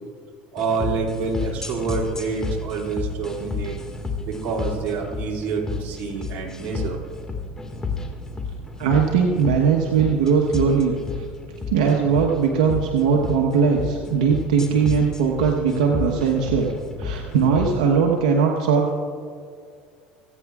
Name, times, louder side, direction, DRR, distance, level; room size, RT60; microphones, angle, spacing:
voice 1, 0.5-3.8 4.2-7.0, right 4 dB, 55° right, -1 dB, 2.6 m, -27 dB
sound 1, 0.6-17.7, left 4 dB, 15° left, 1.8 m, -31 dB
voice 2, 8.8-10.9 11.7-16.7 17.0-19.0, right 6 dB, 85° right, 1 dB, 1.1 m, -20 dB
26.5 x 9.3 x 2.4 m, 2.2 s
supercardioid pair, 95°, 4 cm